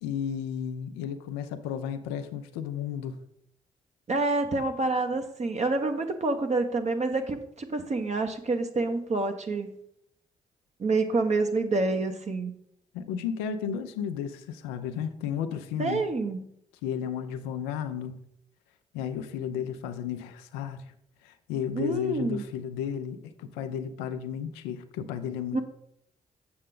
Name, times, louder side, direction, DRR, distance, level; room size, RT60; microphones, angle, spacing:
voice 1, 0.0-3.2 12.9-16.1 16.8-18.2 18.9-20.9 21.2-25.6, left 8 dB, 85° left, 9 dB, 0.6 m, -33 dB
voice 2, 4.1-9.8 10.8-12.5 15.8-16.4 21.7-22.4 25.5-25.6, right 3 dB, 40° right, 5 dB, 1.0 m, -27 dB
7.7 x 6.5 x 3.8 m, 0.72 s
hypercardioid pair, 45°, 17 cm